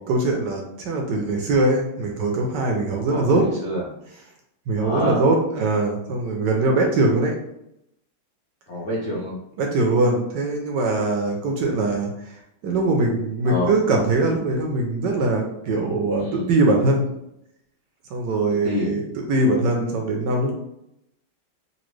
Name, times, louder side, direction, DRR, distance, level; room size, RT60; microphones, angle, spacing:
voice 1, 0.1-3.4 4.7-7.3 9.6-12.1 12.6-17.0 18.1-20.6, right 2 dB, 70° right, 1 dB, 1.1 m, -22 dB
voice 2, 3.1-3.9 4.8-5.2 8.7-9.4 13.4-13.7 16.2-16.5 18.5-18.9, equal, 60° left, -7 dB, 0.7 m, -27 dB
4.1 x 2.5 x 3.1 m, 0.80 s
omnidirectional pair, 2.2 m